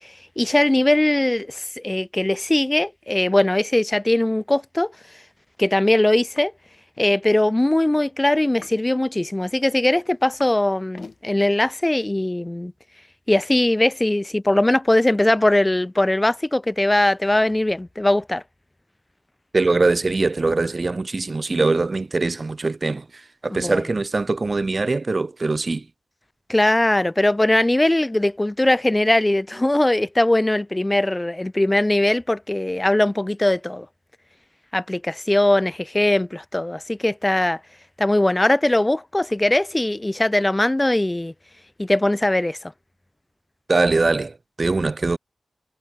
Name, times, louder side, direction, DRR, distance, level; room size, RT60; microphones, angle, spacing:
voice 1, 0.0-4.9 5.6-6.5 7.0-12.7 13.3-18.4 23.5-23.8 26.5-33.9 34.7-37.6 38.0-41.3 41.8-42.6, left 1 dB, 20° left, 3.4 m, -20 dB
sound 1, 6.3-6.5 6.7-7.2 8.4-8.9 9.4-10.6 10.9-11.2 11.9-12.0, left 4 dB, 65° left, 4.2 m, -44 dB
voice 2, 19.5-25.9 43.7-45.2, right 3 dB, 50° right, 0.5 m, -22 dB
cardioid pair, 40°, 0 cm